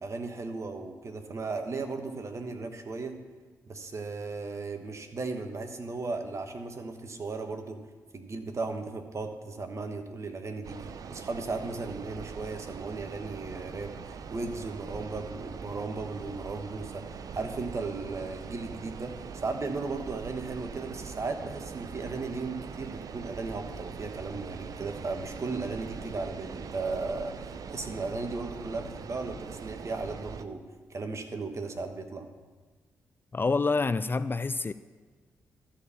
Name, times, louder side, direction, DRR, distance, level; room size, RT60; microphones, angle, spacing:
voice 1, 0.0-3.1 3.7-7.8 8.1-19.1 19.4-27.3 27.7-30.6 30.9-32.2, right 3 dB, 45° right, 1.2 m, -36 dB
sound 1, 10.6-30.5, right 6 dB, 60° right, 0.5 m, -42 dB
voice 2, 33.3-34.7, left 4 dB, 30° left, 0.4 m, -27 dB
13.0 x 4.3 x 7.0 m
supercardioid pair, 45°, 7 cm